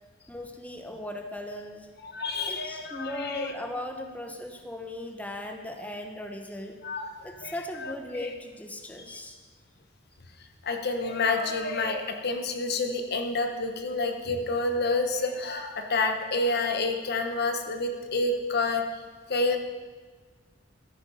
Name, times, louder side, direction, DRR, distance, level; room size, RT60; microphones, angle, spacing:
voice 1, 0.2-1.9 2.5-6.8 7.2-9.4, left 1 dB, 10° left, 4 dB, 1.0 m, -38 dB
voice 2, 2.0-3.5 6.8-7.5 7.8-7.9 9.1-9.2 10.6-18.8 19.3-19.6, left 3 dB, 55° left, 5 dB, 1.2 m, -28 dB
13.0 x 10.5 x 5.7 m, 1.4 s
head